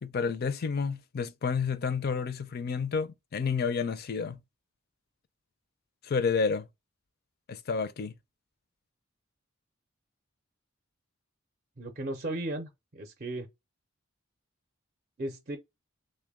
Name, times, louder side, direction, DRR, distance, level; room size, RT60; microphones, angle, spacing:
voice 1, 0.0-4.4 6.0-6.7 7.5-8.1, left 5 dB, 50° left, 0.4 m, -30 dB
voice 2, 11.8-13.5 15.2-15.6, right 1 dB, 40° right, 0.5 m, -36 dB
3.3 x 2.1 x 3.5 m
head